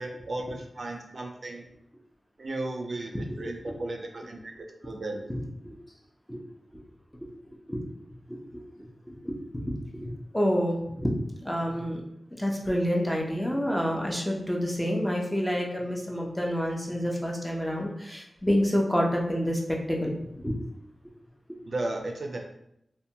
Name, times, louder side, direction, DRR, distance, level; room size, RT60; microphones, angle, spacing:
voice 1, 0.0-1.7 2.4-5.2 21.7-22.4, right 2 dB, 55° right, 2 dB, 0.4 m, -35 dB
voice 2, 8.3-8.6 9.1-9.3 10.0-11.1 11.4-12.0 12.4-19.6 19.9-20.6, equal, 10° left, -1 dB, 0.5 m, -28 dB
2.6 x 2.1 x 2.7 m, 0.77 s
wide cardioid pair, 80°, 0 cm